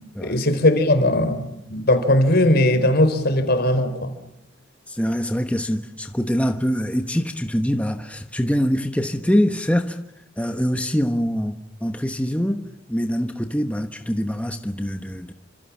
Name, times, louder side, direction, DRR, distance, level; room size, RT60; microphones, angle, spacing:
voice 1, 0.0-4.1, left 1 dB, 55° left, 4.2 m, -19 dB
voice 2, 4.9-10.0 10.4-15.3, equal, 5° left, 1.1 m, -24 dB
30.0 x 26.5 x 7.4 m
head